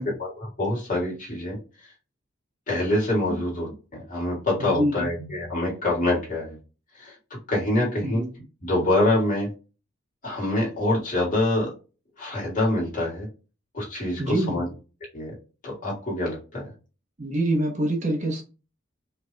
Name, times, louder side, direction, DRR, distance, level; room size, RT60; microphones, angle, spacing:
voice 1, 0.2-1.9 2.7-6.6 6.9-7.2 7.5-8.2 8.6-9.5 10.2-11.7 12.2-13.3 13.7-14.6 15.1-15.3 15.6-16.7, left 1 dB, 40° left, 2.2 m, -25 dB
voice 2, 4.6-4.9 8.0-8.3 14.2-14.6 17.2-18.4, right 1 dB, 35° right, 0.9 m, -25 dB
5.0 x 3.4 x 2.2 m
head